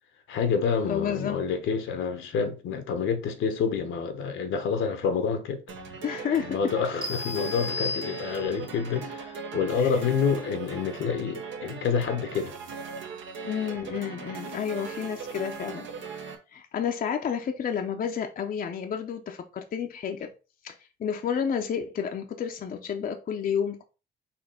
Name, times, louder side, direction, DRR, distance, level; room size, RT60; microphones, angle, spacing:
voice 1, 0.3-5.6 6.4-12.5, left 6 dB, 75° left, 0.9 m, -28 dB
voice 2, 0.9-1.4 6.0-6.6 9.7-10.0 13.4-20.3 20.6-23.8, left 8 dB, 45° left, 0.6 m, -31 dB
sound 1, 5.7-16.4, right 5 dB, 70° right, 1.0 m, -39 dB
sound 2, 7.0-8.7, left 3 dB, 25° right, 0.8 m, -34 dB
4.3 x 2.8 x 4.2 m
cardioid pair, 90°, 20 cm